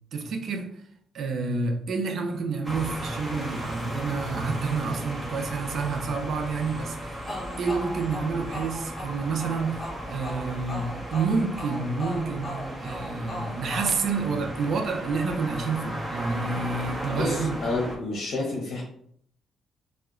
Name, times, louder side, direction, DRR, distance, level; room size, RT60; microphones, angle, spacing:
voice 1, 0.1-0.8 1.1-7.2 7.6-17.6, right 4 dB, 60° right, 0.5 m, -29 dB
sound 1, 2.6-18.0, right 1 dB, 15° right, 0.9 m, -36 dB
sound 2, 7.2-14.8, left 1 dB, 25° left, 1.1 m, -39 dB
voice 2, 17.1-18.8, left 2 dB, 70° left, 0.7 m, -30 dB
2.8 x 2.1 x 3.6 m
cardioid pair, 90°, 0 cm